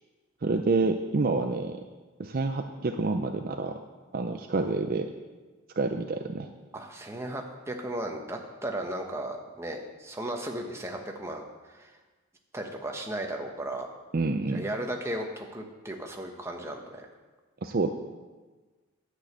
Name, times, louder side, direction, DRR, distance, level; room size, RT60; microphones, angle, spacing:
voice 1, 0.4-1.8 2.2-3.8 4.1-5.1 5.8-6.5 14.1-14.7 17.6-17.9, right 3 dB, 40° right, 6 dB, 0.5 m, -28 dB
voice 2, 6.7-11.4 11.7-11.9 12.5-13.9 14.5-17.1, right 1 dB, 10° right, 2 dB, 1.0 m, -35 dB
10.5 x 6.3 x 8.2 m, 1.3 s
head